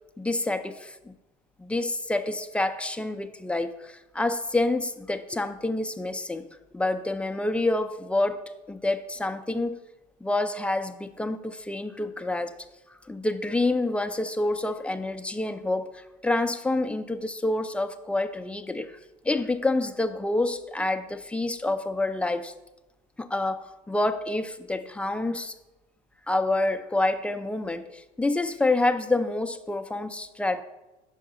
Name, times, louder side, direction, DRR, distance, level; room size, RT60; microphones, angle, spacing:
voice 1, 0.2-1.1 1.6-6.4 6.7-8.4 8.7-9.8 10.2-12.5 13.1-19.0 19.2-22.5 23.2-25.5 26.3-30.6, left 2 dB, 5° left, 8 dB, 0.4 m, -27 dB
5.7 x 5.3 x 3.7 m, 1.0 s
supercardioid pair, 90°, 20 cm